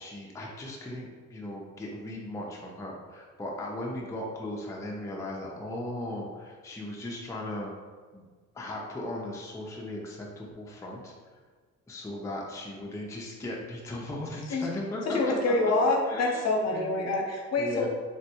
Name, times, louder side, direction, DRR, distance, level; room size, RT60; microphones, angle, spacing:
voice 1, 0.0-7.7 8.1-8.2 8.5-11.1 11.9-15.7 16.1-16.4 16.7-17.0 17.6-17.9, left 1 dB, 10° left, -2 dB, 0.4 m, -37 dB
voice 2, 15.0-17.9, left 2 dB, 60° left, -1 dB, 0.7 m, -26 dB
3.4 x 2.1 x 2.8 m, 1.5 s
cardioid pair, 90°, 30 cm